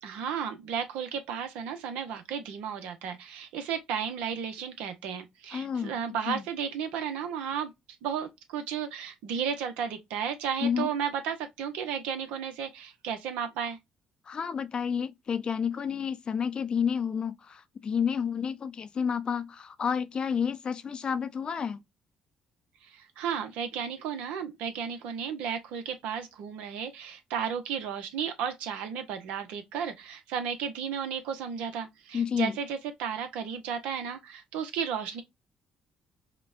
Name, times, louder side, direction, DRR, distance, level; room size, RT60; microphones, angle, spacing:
voice 1, 0.0-7.7 8.0-13.8 22.8-35.2, right 7 dB, 75° right, 0.8 m, -34 dB
voice 2, 5.5-6.0 6.3-6.4 10.6-10.9 14.3-21.8 32.1-32.6, left 7 dB, 45° left, 0.5 m, -30 dB
5.0 x 2.2 x 2.4 m
hypercardioid pair, 55°, 2 cm